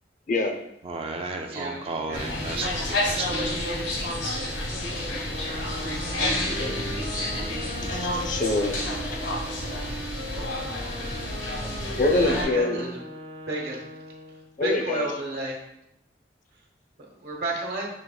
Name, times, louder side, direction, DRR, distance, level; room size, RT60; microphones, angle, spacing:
voice 1, 0.8-4.1, right 3 dB, 35° right, 3 dB, 0.4 m, -34 dB
voice 2, 1.5-2.5 10.9-11.2 12.1-13.0 13.5-13.8 14.6-15.5 17.2-17.9, right 2 dB, 60° right, -1 dB, 1.0 m, -32 dB
sound 1, 2.1-12.4, left 1 dB, 80° left, 1.0 m, -30 dB
sound 2, 5.3-14.5, right 1 dB, 80° right, 0.7 m, -39 dB
voice 3, 6.3-6.8 7.9-9.2 11.9-12.8 14.6-15.1, left 2 dB, 45° left, 4 dB, 0.5 m, -25 dB
6.1 x 2.9 x 2.3 m, 0.81 s
head